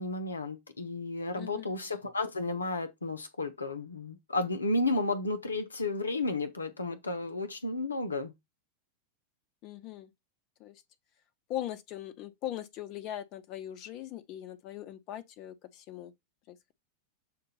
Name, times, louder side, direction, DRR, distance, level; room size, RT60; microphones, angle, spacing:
voice 1, 0.0-8.3, left 2 dB, 75° left, 0.9 m, -32 dB
voice 2, 1.3-1.6 9.6-10.1 10.6-10.7 11.5-16.1 16.5-16.7, left 12 dB, 40° left, 0.8 m, -40 dB
7.6 x 2.6 x 5.6 m
figure-of-eight pair, 90°, 0 cm